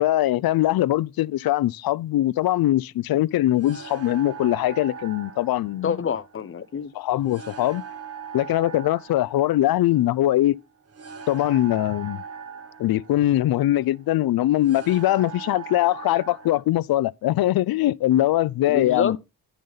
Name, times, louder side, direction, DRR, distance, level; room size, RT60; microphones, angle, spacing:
voice 1, 0.0-6.0 6.9-7.8 8.3-10.6 11.3-12.2 12.8-19.2, left 14 dB, 85° left, 0.5 m, -22 dB
sound 1, 3.5-16.6, right 7 dB, 45° right, 1.4 m, -41 dB
voice 2, 5.8-6.9 18.7-19.2, left 7 dB, 35° left, 0.6 m, -27 dB
10.5 x 6.5 x 4.0 m
wide cardioid pair, 170°, 35 cm